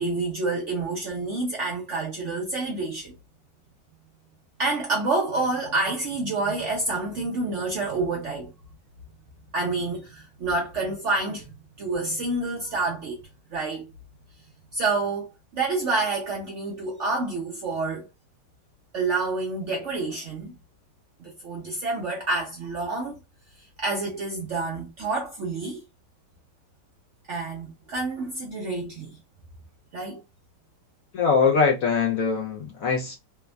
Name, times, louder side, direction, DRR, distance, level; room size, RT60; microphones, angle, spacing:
voice 1, 0.0-3.2 4.6-8.5 9.5-13.9 14.7-18.1 18.9-20.5 21.2-23.2 23.6-25.8 27.3-29.2 29.9-30.2, right 3 dB, 65° right, 0.7 m, -28 dB
voice 2, 31.1-33.2, left 5 dB, 70° left, 0.9 m, -22 dB
3.3 x 2.0 x 2.2 m
omnidirectional pair, 1.9 m